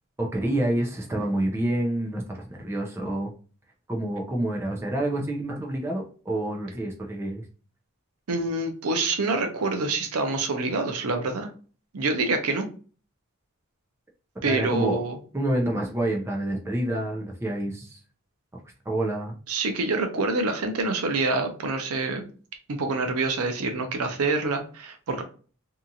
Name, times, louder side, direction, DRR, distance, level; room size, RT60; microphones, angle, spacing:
voice 1, 0.2-3.3 3.9-7.4 14.5-15.0 15.3-18.0 18.9-19.4, right 1 dB, 10° right, 0 dB, 0.4 m, -28 dB
voice 2, 8.3-11.5 11.9-12.7 14.4-15.2 19.5-22.3 22.7-25.2, right 3 dB, 80° right, 5 dB, 0.6 m, -26 dB
2.7 x 2.4 x 2.6 m, 0.39 s
head